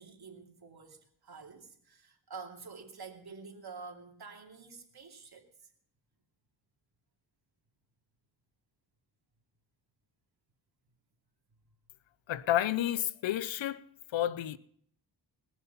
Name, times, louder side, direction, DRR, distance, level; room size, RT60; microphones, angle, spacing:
voice 1, 0.0-5.4, right 4 dB, 55° right, 2.7 m, -48 dB
voice 2, 12.3-13.8 14.1-14.6, left 12 dB, 80° left, 0.7 m, -30 dB
20.5 x 7.3 x 5.6 m
cardioid pair, 50°, 45 cm